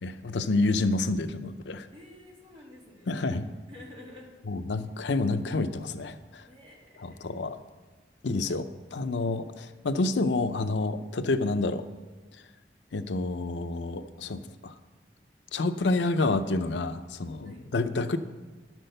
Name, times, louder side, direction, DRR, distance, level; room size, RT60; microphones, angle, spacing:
voice 1, 0.0-1.9 3.1-3.5 4.5-6.5 7.0-7.6 8.2-11.8 12.9-14.7 15.5-18.2, left 2 dB, 85° left, 10 dB, 0.6 m, -28 dB
voice 2, 1.9-4.3 6.5-7.3 17.4-17.6, left 1 dB, 30° right, -3 dB, 2.6 m, -50 dB
11.5 x 6.1 x 6.6 m, 1.3 s
head